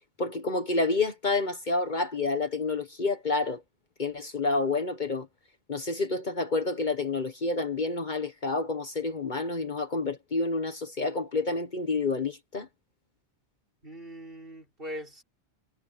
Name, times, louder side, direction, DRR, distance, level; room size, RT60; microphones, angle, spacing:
voice 1, 0.2-3.6 4.0-5.3 5.7-12.7, left 3 dB, 45° left, 1.4 m, -29 dB
voice 2, 13.8-15.2, equal, 55° right, 6.1 m, -41 dB
omnidirectional pair, 1.2 m